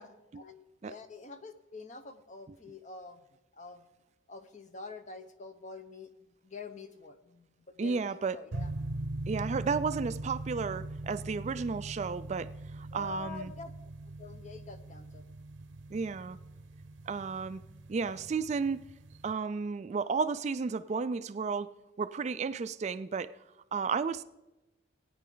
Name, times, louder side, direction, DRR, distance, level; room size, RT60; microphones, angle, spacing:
voice 1, 0.0-3.3 3.5-3.9 4.3-8.7 12.9-13.7 14.2-15.3, left 4 dB, 40° left, 9 dB, 0.8 m, -47 dB
voice 2, 7.8-8.4 9.3-13.5 15.9-16.4 17.1-17.6 17.9-18.8 19.2-21.7 22.0-23.3 23.7-24.2, right 5 dB, 35° right, 13 dB, 0.3 m, -33 dB
sound 1, 8.5-19.3, right 2 dB, 70° right, 0.7 m, -41 dB
17.5 x 9.4 x 3.9 m, 0.98 s
head